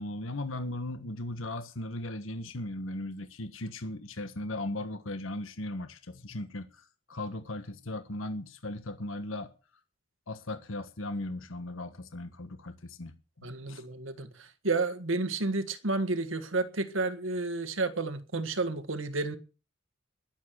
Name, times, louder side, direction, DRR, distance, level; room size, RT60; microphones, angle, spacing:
voice 1, 0.0-9.5 10.3-13.8, left 1 dB, 80° left, 1.4 m, -37 dB
voice 2, 13.4-19.4, right 3 dB, 75° right, 1.7 m, -31 dB
20.5 x 7.5 x 6.4 m
head